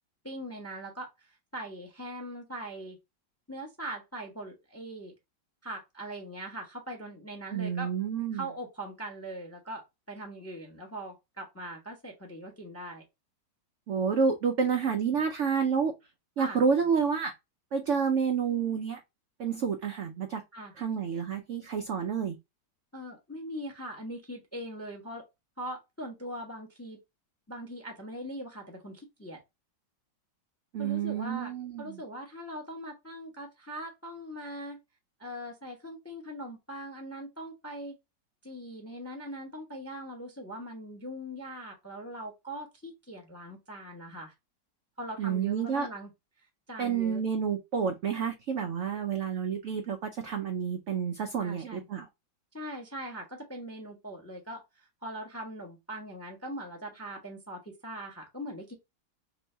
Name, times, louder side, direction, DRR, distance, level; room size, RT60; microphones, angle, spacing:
voice 1, 0.2-3.0 3.5-5.1 5.6-7.9 8.3-13.0 16.4-16.6 20.5-20.7 22.9-25.2 25.6-27.0 27.5-29.4 30.8-34.8 35.2-37.9 38.4-44.3 45.0-46.1 46.4-47.2 51.4-51.9 52.5-58.7, right 1 dB, 15° left, 0.5 m, -41 dB
voice 2, 7.5-8.5 13.9-15.9 16.4-17.3 17.7-19.0 19.4-20.4 20.8-22.3 30.7-32.0 45.2-45.9 46.8-52.1, right 6 dB, 80° right, 0.6 m, -29 dB
3.0 x 2.7 x 4.3 m
omnidirectional pair, 2.0 m